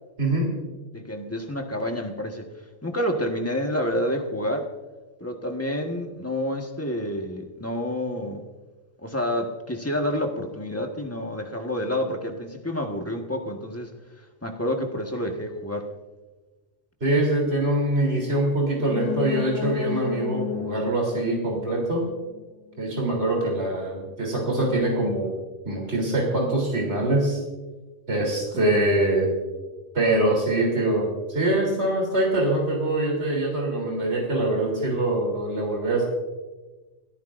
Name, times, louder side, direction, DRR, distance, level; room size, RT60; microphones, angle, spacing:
voice 1, 0.2-0.5 17.0-22.0 22.8-25.3 25.7-27.4 28.1-29.3 29.9-36.0, right 1 dB, 55° right, -1 dB, 3.6 m, -24 dB
voice 2, 0.9-2.5 2.8-4.7 5.2-8.4 9.0-13.9 14.4-15.9, equal, 10° left, 2 dB, 1.3 m, -28 dB
sound 1, 18.7-22.4 22.7-22.8, left 8 dB, 80° left, 1.3 m, -32 dB
29.5 x 14.0 x 2.6 m, 1.2 s
omnidirectional pair, 1.3 m